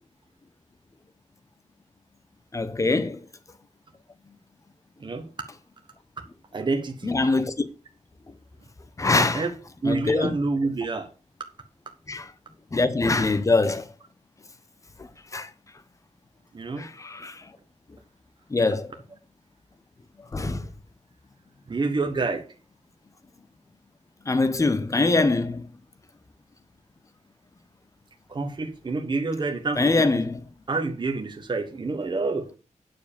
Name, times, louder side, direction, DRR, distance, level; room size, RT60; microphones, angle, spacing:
voice 1, 2.5-3.3 7.0-7.7 9.0-9.5 9.8-10.3 12.1-12.3 12.7-13.9 15.0-15.5 16.8-17.5 18.5-18.9 20.3-20.7 24.2-25.7 29.8-30.4, left 3 dB, 25° left, 0.9 m, -24 dB
voice 2, 6.5-7.1 9.1-9.5 9.8-11.1 16.5-16.9 21.7-22.5 28.3-30.0 30.7-32.5, right 3 dB, 35° right, 1.3 m, -28 dB
9.5 x 4.7 x 6.9 m
wide cardioid pair, 175°, 13 cm